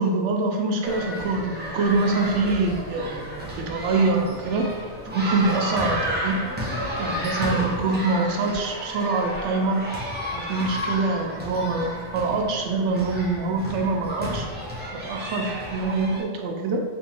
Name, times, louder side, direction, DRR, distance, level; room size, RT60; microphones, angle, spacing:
voice 1, 0.0-4.7 5.1-6.4 7.0-9.9 10.3-14.5 15.0-16.8, right 3 dB, 85° right, 2 dB, 0.9 m, -25 dB
sound 1, 0.8-16.2, equal, 15° right, 0.4 m, -32 dB
3.4 x 3.0 x 2.8 m, 1.4 s
omnidirectional pair, 1.2 m